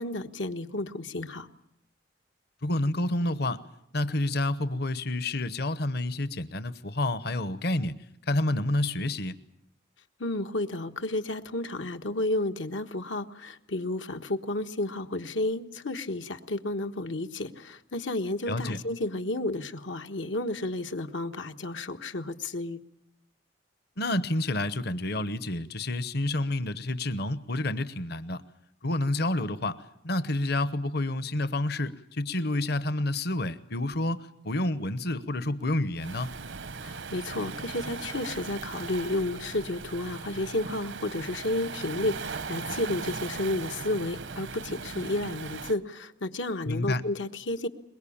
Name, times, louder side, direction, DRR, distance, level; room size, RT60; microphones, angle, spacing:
voice 1, 0.0-1.5 10.2-22.8 36.8-47.7, left 2 dB, 90° left, 6 dB, 1.4 m, -32 dB
voice 2, 2.6-3.6 3.9-8.0 8.3-9.3 18.5-18.8 24.0-28.4 28.8-36.3 46.7-47.0, left 1 dB, 60° left, 14 dB, 0.9 m, -29 dB
Waves surf, 36.0-45.8, right 4 dB, 75° right, 0.9 m, -38 dB
23.0 x 21.5 x 8.7 m, 0.75 s
head